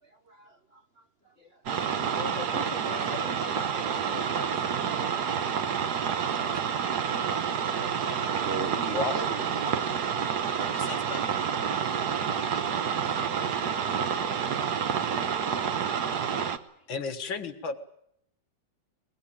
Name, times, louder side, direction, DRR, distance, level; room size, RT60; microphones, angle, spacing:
voice 1, 0.0-2.2 8.1-10.8 12.5-12.7, right 4 dB, 40° right, 1.0 m, -41 dB
voice 2, 1.4-1.8 8.9-9.2 16.9-17.8, left 4 dB, 90° left, 2.4 m, -33 dB
sound 1, 1.7-16.6, right 7 dB, 60° right, 1.6 m, -29 dB
voice 3, 2.1-4.6 6.3-6.4 8.1-8.2 10.7-11.4, left 8 dB, 50° left, 1.5 m, -42 dB
22.0 x 21.0 x 9.0 m
omnidirectional pair, 2.0 m